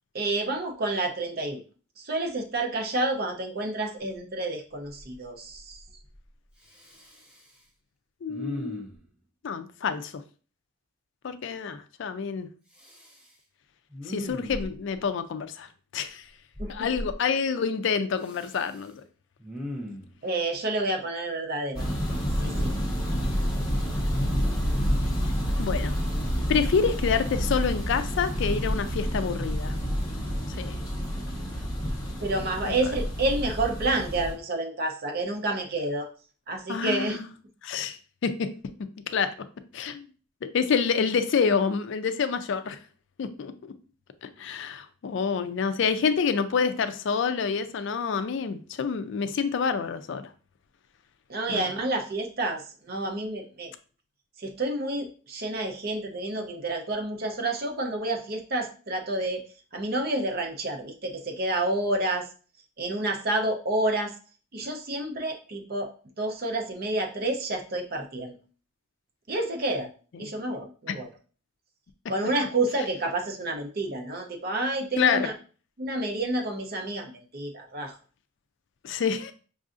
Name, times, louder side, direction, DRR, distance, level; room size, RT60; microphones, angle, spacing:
voice 1, 0.1-1.6 2.0-5.8 16.6-16.9 20.2-21.9 22.4-22.7 31.4-31.5 32.2-36.1 36.5-37.2 51.3-53.7 54.4-59.5 59.7-62.3 62.8-64.1 64.5-65.9 66.2-68.3 69.3-69.9 70.2-71.1 72.1-75.3 75.8-77.9, right 2 dB, 45° right, 3 dB, 0.6 m, -29 dB
Respiratory sounds, 4.2-4.3 4.7-5.2 5.5-6.2 6.6-7.6 8.3-9.1 12.7-13.3 13.9-15.0 16.5-17.1 18.2-18.9 19.4-20.2 22.0-22.9 23.3-23.5, left 1 dB, 5° right, 0.5 m, -39 dB
voice 2, 8.2-8.8 9.4-10.2 11.2-12.5 14.1-16.3 16.7-18.9 25.6-26.0 26.5-29.7 30.5-30.8 32.7-32.8 36.7-37.3 37.6-38.5 39.1-39.3 39.7-40.0 40.4-42.8 43.2-43.5 44.2-50.3 51.5-51.7 70.1-70.3 70.9-71.0 75.0-75.3 78.8-79.3, left 6 dB, 60° left, 11 dB, 0.3 m, -27 dB
sound 1, 21.7-34.3, equal, 20° left, 0.9 m, -28 dB
5.4 x 2.5 x 2.5 m, 0.39 s
head